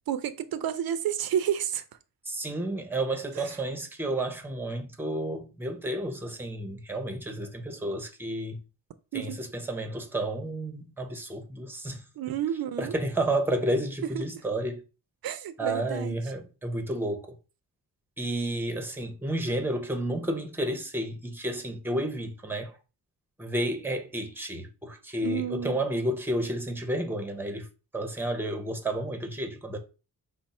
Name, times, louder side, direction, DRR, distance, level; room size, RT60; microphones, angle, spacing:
voice 1, 0.1-1.8 3.4-3.5 9.1-9.4 12.2-12.9 14.1-14.2 15.2-16.2 25.2-25.8, right 10 dB, 80° right, 0.5 m, -30 dB
voice 2, 2.3-8.6 9.1-12.3 12.8-14.8 15.6-17.3 18.2-22.8 23.4-27.7 27.9-29.8, right 1 dB, 5° right, 0.7 m, -31 dB
5.1 x 2.0 x 4.1 m
wide cardioid pair, 135°, 36 cm